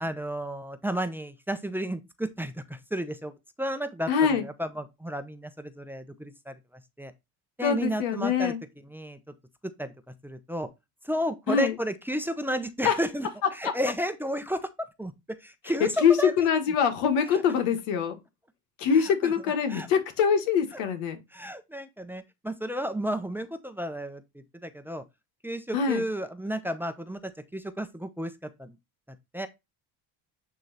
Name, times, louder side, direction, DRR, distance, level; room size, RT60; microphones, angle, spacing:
voice 1, 0.0-3.3 3.6-6.6 7.0-7.1 7.6-8.5 8.9-9.2 9.8-9.9 10.2-10.7 11.0-15.1 15.4-16.3 17.3-17.4 18.9-19.3 19.7-19.9 21.3-24.2 24.6-25.0 25.4-28.3 28.6-28.8 29.3-29.5, equal, 5° right, 0.8 m, -32 dB
voice 2, 4.1-4.5 7.6-8.6 11.5-11.8 12.8-13.0 13.6-13.7 16.0-18.2 18.8-21.2 25.7-26.0, left 7 dB, 90° left, 1.6 m, -24 dB
9.0 x 3.1 x 4.1 m
supercardioid pair, 90°, 41 cm